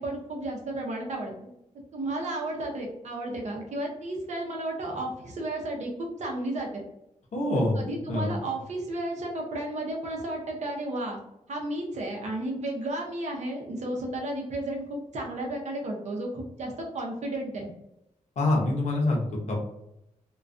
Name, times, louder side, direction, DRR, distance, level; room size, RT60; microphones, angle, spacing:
voice 1, 0.0-1.5 1.9-6.8 7.8-11.2 11.5-17.7, right 1 dB, 60° right, -1 dB, 0.6 m, -33 dB
voice 2, 7.3-8.4 18.4-19.6, left 1 dB, 60° left, -1 dB, 0.7 m, -26 dB
2.3 x 2.2 x 2.5 m, 0.84 s
wide cardioid pair, 165°, 14 cm